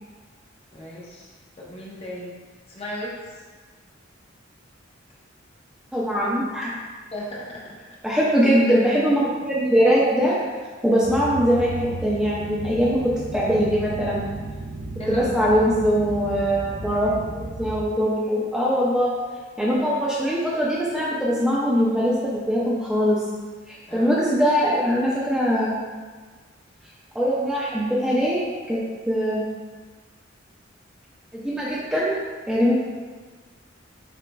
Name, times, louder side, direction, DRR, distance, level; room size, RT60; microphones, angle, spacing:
voice 1, 0.7-1.3 1.6-2.4 2.7-3.3 7.1-8.0 15.0-15.5 23.9-24.1, equal, 30° left, -4 dB, 0.7 m, -35 dB
voice 2, 5.9-6.7 8.0-10.4 10.8-14.2 15.1-17.1 17.6-19.1 19.6-23.2 23.7-25.7 27.1-28.8 29.1-29.5 31.3-32.1 32.5-32.8, equal, 5° right, -7 dB, 0.5 m, -21 dB
sound 1, 11.0-17.8, right 2 dB, 85° right, 0.5 m, -34 dB
6.8 x 2.4 x 2.2 m, 1.4 s
head